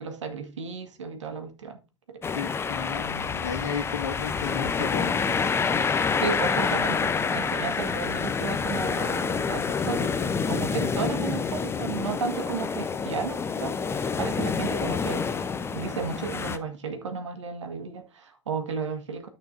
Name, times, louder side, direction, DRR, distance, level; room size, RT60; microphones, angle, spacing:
voice 1, 0.0-1.8 2.1-2.2 6.2-19.3, right 5 dB, 80° right, 1.6 m, -34 dB
sound 1, 2.2-16.6, left 5 dB, 15° left, 0.7 m, -28 dB
voice 2, 2.3-5.2 10.7-10.9, left 7 dB, 80° left, 1.7 m, -33 dB
13.0 x 6.1 x 2.6 m
hypercardioid pair, 95°, 15 cm